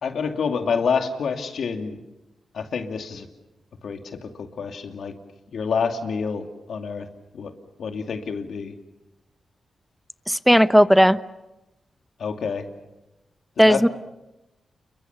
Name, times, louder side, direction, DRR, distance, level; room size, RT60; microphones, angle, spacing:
voice 1, 0.0-2.0 2.5-3.3 3.8-5.2 5.5-7.1 7.3-7.5 7.8-8.7 12.2-12.7 13.6-13.8, left 5 dB, 75° left, 6 dB, 2.5 m, -27 dB
voice 2, 10.3-11.2 13.6-13.9, equal, ahead, 14 dB, 0.9 m, -15 dB
28.5 x 23.0 x 6.9 m, 0.98 s
cardioid pair, 55°, 0 cm